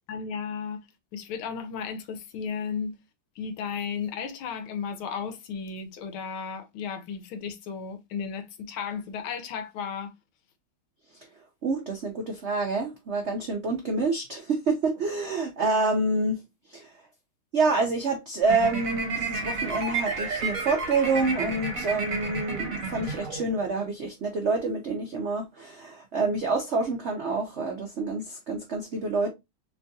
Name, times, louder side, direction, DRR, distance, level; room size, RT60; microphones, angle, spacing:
voice 1, 0.1-0.9 1.1-3.0 3.4-10.1, left 6 dB, 80° left, 1.6 m, -34 dB
voice 2, 11.6-16.4 16.7-16.9 17.5-29.3, right 3 dB, 80° right, 0.6 m, -27 dB
sound 1, 18.5-23.7, right 3 dB, 45° right, 1.6 m, -31 dB
3.7 x 3.4 x 2.6 m
omnidirectional pair, 2.3 m